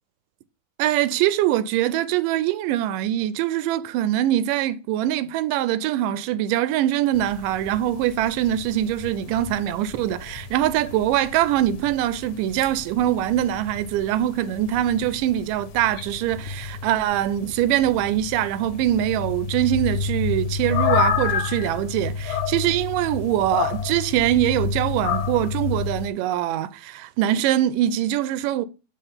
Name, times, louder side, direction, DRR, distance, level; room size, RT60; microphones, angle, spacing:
voice 1, 0.8-28.7, right 12 dB, 90° right, 2.1 m, -23 dB
sound 1, 7.1-26.1, left 6 dB, 75° left, 2.2 m, -30 dB
5.5 x 4.1 x 5.5 m
omnidirectional pair, 3.7 m